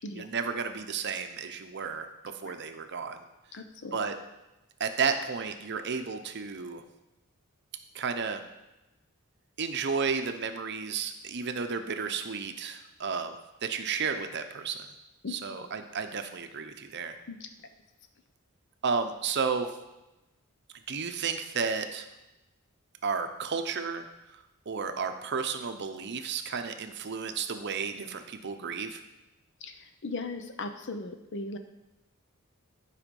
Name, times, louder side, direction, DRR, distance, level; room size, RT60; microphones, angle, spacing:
voice 1, 0.1-3.2 3.9-4.1 4.8-6.8 7.9-8.4 9.6-13.4 13.6-14.8 15.3-17.2 18.8-19.7 20.9-22.0 23.0-24.1 24.7-29.0, right 5 dB, 55° right, 8 dB, 0.7 m, -32 dB
voice 2, 3.5-4.0 15.2-15.7 17.3-17.5 29.6-31.6, left 3 dB, 55° left, 8 dB, 0.8 m, -38 dB
10.0 x 4.9 x 5.3 m, 0.99 s
head